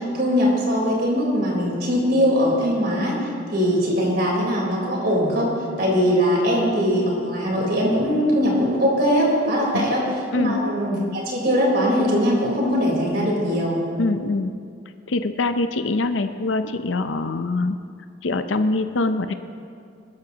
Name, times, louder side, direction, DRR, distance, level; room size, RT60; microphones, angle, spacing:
voice 1, 0.0-3.1 3.5-5.5 5.8-10.0 10.3-13.8, equal, 55° right, -3 dB, 4.0 m, -21 dB
voice 2, 14.0-14.5 15.1-17.8 18.2-19.3, left 2 dB, 90° left, 9 dB, 0.6 m, -23 dB
21.5 x 13.5 x 2.9 m, 2.3 s
head